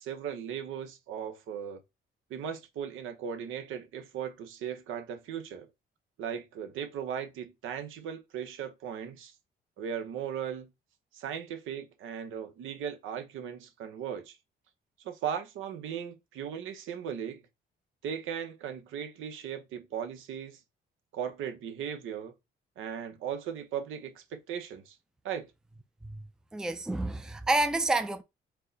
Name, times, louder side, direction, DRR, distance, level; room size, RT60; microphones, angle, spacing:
voice 1, 0.0-1.8 2.3-5.7 6.2-9.3 9.8-10.7 11.1-14.4 15.0-17.4 18.0-20.6 21.1-22.3 22.8-25.0 25.2-25.5, right 8 dB, 85° right, 0.9 m, -37 dB
voice 2, 26.5-28.2, right 2 dB, 5° right, 0.4 m, -29 dB
4.6 x 2.2 x 3.9 m
cardioid pair, 90°, 20 cm